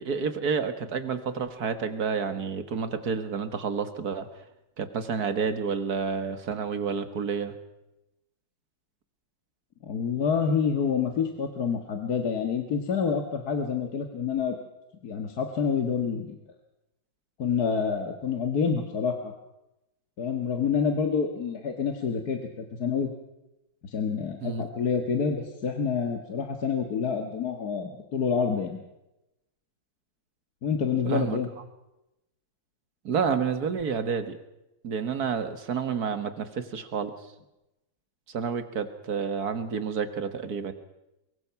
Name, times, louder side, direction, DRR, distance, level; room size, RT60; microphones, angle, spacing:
voice 1, 0.0-4.3 4.8-7.5 24.4-24.7 31.1-31.4 33.0-34.4 34.8-37.1 38.3-40.7, right 6 dB, 55° right, 10 dB, 2.0 m, -29 dB
voice 2, 9.8-14.6 15.0-16.4 17.4-19.3 20.2-23.1 23.8-28.8 30.6-31.5, left 6 dB, 55° left, 4 dB, 2.0 m, -27 dB
24.0 x 22.5 x 6.0 m, 0.92 s
omnidirectional pair, 2.1 m